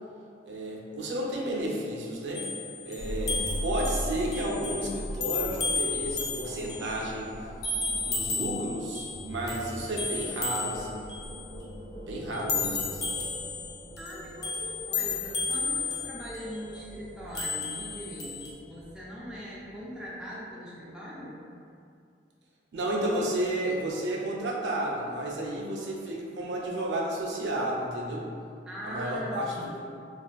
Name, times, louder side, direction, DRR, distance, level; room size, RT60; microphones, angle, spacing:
voice 1, 0.5-2.5 2.8-7.4 8.0-11.1 12.1-13.1 22.7-28.3 28.8-29.9, right 1 dB, 90° right, -2 dB, 0.5 m, -32 dB
sound 1, 2.3-7.2 7.6-9.2 9.5-11.4 12.3-16.8 17.3-18.5, left 4 dB, 60° left, 0.5 m, -33 dB
sound 2, 3.0-20.2, equal, 40° left, 1.0 m, -41 dB
voice 2, 14.0-21.4 28.7-29.8, equal, 5° right, -8 dB, 0.4 m, -40 dB
3.4 x 2.3 x 2.3 m, 2.4 s
head